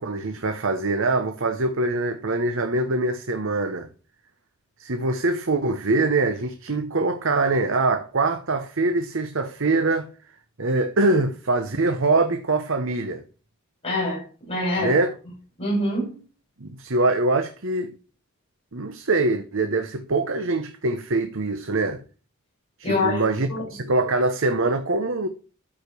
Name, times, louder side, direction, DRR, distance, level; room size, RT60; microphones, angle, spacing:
voice 1, 0.0-3.9 4.8-10.1 10.6-13.2 14.8-15.1 16.6-17.9 18.7-22.0 22.8-25.3, right 2 dB, 60° right, 1.0 m, -23 dB
voice 2, 13.8-15.0 15.6-16.1 22.8-23.6, left 1 dB, 30° left, 5.7 m, -25 dB
13.0 x 5.1 x 6.2 m
head